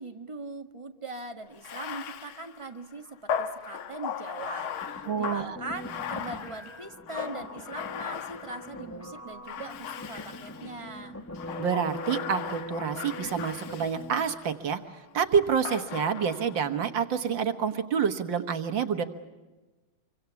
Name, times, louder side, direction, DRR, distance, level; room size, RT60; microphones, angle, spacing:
voice 1, 0.0-11.2, right 2 dB, 15° right, 6 dB, 1.5 m, -41 dB
Bathtub (filling or washing), 1.5-8.9 9.5-10.8 11.3-14.5 15.7-16.6, left 8 dB, 85° left, 2.0 m, -37 dB
sound 1, 4.8-14.3, equal, 15° left, 0.5 m, -42 dB
voice 2, 5.1-5.6 11.6-14.8 15.1-19.0, right 7 dB, 65° right, 8 dB, 2.1 m, -28 dB
27.5 x 24.5 x 7.0 m, 1.2 s
omnidirectional pair, 2.2 m